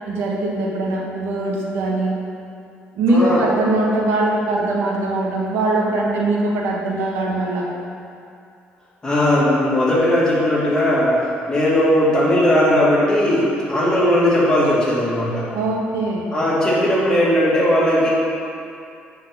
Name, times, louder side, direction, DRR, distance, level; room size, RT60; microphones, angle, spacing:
voice 1, 0.0-2.1 2.9-7.7 15.5-16.2, right 2 dB, 85° right, -2 dB, 1.4 m, -21 dB
voice 2, 3.1-3.4 9.0-11.2 11.5-15.5 16.3-18.1, left 1 dB, 15° left, -7 dB, 2.2 m, -17 dB
8.3 x 4.7 x 6.0 m, 2.5 s
cardioid pair, 145°, 4 cm